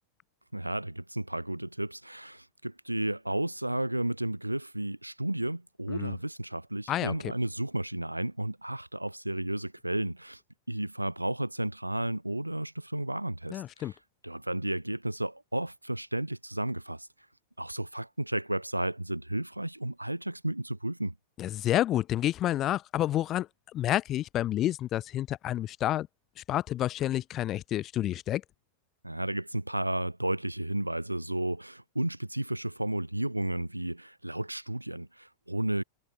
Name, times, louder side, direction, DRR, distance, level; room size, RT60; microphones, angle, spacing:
voice 1, 0.5-10.4 10.7-13.9 14.2-17.1 17.6-21.1 29.0-35.8, right 1 dB, 85° right, 4.1 m, -33 dB
voice 2, 6.9-7.3 13.5-13.9 21.4-23.5 23.7-26.1 26.5-28.4, left 13 dB, 30° left, 2.0 m, -29 dB
figure-of-eight pair, 90°, 0 cm